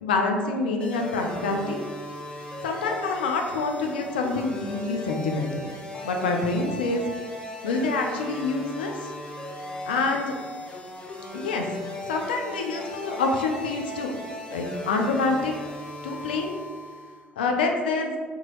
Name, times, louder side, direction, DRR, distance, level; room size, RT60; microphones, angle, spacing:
voice 1, 0.0-1.8 2.6-5.7 6.0-7.0 7.6-9.1 9.9-10.3 11.3-11.7 12.1-14.2 14.5-15.5 16.0-16.5 17.4-18.1, left 3 dB, 80° left, 3 dB, 0.3 m, -26 dB
sound 1, 0.8-17.2, left 1 dB, 20° left, 0.6 m, -37 dB
2.7 x 2.2 x 3.0 m, 1.5 s
hypercardioid pair, 55°, 5 cm